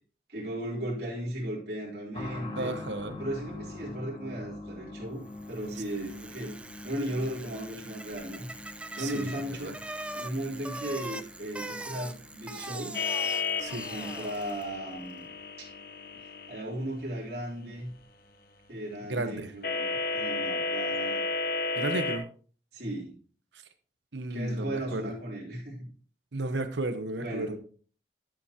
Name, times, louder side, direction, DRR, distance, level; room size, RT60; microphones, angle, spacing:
voice 1, 0.3-2.8 3.2-5.2 5.5-6.5 6.8-8.5 9.0-9.8 10.1-13.0 13.8-15.3 15.6-15.7 16.5-17.9 18.7-21.2 22.7-23.2 24.3-25.9 27.2-27.6, right 1 dB, 60° right, -6 dB, 3.4 m, -36 dB
sound 1, 2.1-16.6 16.8-16.9 17.9-18.0, left 2 dB, 30° left, 1.6 m, -46 dB
voice 2, 2.6-3.2 6.0-6.1 9.0-9.7 13.6-13.9 19.1-19.5 21.8-22.3 24.1-25.0 26.3-27.6, right 2 dB, 85° right, 10 dB, 1.0 m, -33 dB
Bicycle, 5.3-14.8, right 2 dB, 5° right, 0.3 m, -42 dB
sound 2, 12.9-16.6 19.6-22.2, left 4 dB, 55° left, 1.0 m, -32 dB
12.0 x 7.1 x 2.9 m, 0.41 s
head